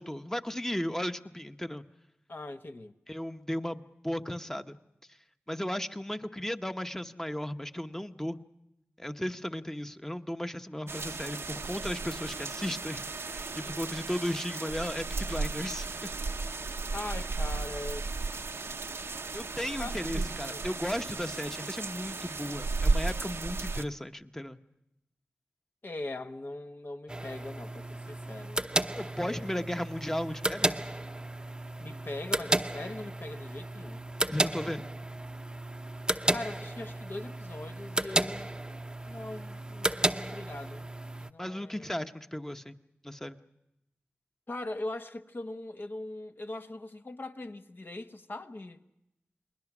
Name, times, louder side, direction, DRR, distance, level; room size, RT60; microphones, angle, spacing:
voice 1, 0.0-1.8 3.1-4.8 5.5-8.4 9.0-16.1 19.3-24.6 29.0-30.8 34.3-34.9 41.4-42.8 43.0-43.4, equal, 10° left, 1.0 m, -35 dB
voice 2, 2.3-2.9 16.9-18.4 19.8-20.7 25.8-28.7 29.2-29.7 31.8-34.1 36.3-38.5 39.1-40.9 41.2-41.9 44.5-48.8, left 2 dB, 50° left, 1.1 m, -41 dB
sound 1, 10.9-23.8, right 3 dB, 70° right, 0.7 m, -34 dB
sound 2, 27.1-41.3, right 1 dB, 20° right, 0.8 m, -33 dB
29.0 x 20.5 x 6.1 m
cardioid pair, 40°, 4 cm